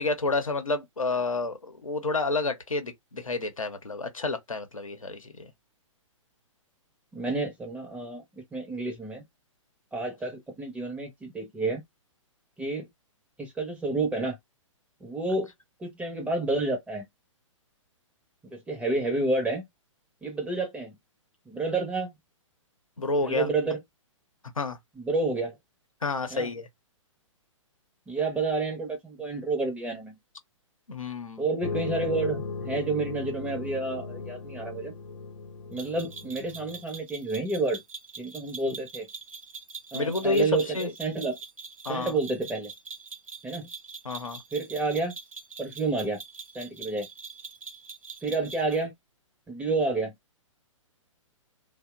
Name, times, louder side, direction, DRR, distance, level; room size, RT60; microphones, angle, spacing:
voice 1, 0.0-5.5 23.0-23.5 24.6-24.8 26.0-26.7 30.9-31.4 39.9-40.9 41.8-42.2 44.0-44.4, left 3 dB, 90° left, 0.7 m, -29 dB
voice 2, 7.1-9.2 9.9-11.8 12.6-12.9 13.4-14.4 15.0-15.5 15.8-17.1 18.4-19.7 20.2-21.0 21.5-22.1 23.2-23.8 25.0-25.6 26.3-26.5 28.1-30.2 31.4-34.9 35.7-37.8 38.2-39.1 39.9-41.4 41.9-42.7 43.4-43.7 44.5-45.1 45.6-46.2 46.5-47.1 48.2-48.9 49.5-50.1, right 3 dB, 5° right, 0.6 m, -29 dB
sound 1, 31.6-36.8, left 4 dB, 60° left, 0.8 m, -37 dB
sound 2, 35.8-48.8, right 4 dB, 85° right, 0.6 m, -44 dB
2.8 x 2.1 x 2.2 m
figure-of-eight pair, 120°, 17 cm